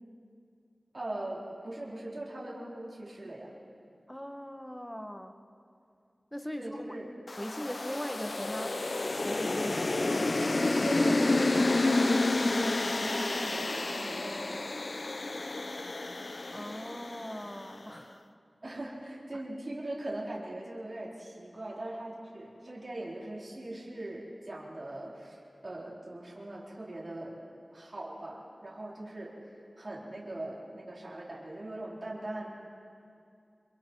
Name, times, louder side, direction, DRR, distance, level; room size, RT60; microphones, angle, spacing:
voice 1, 0.9-3.5 6.5-7.1 10.8-14.7 18.6-27.4 27.7-29.4 29.8-32.5, right 1 dB, 50° right, -5 dB, 4.1 m, -41 dB
voice 2, 4.1-5.3 6.3-6.9 7.4-10.4 16.5-18.3 18.6-18.8 19.3-19.4, equal, 10° left, 7 dB, 1.3 m, -40 dB
sound 1, 7.3-17.6, left 2 dB, 55° left, 0.7 m, -30 dB
26.5 x 23.5 x 4.7 m, 2.4 s
wide cardioid pair, 65°, 0 cm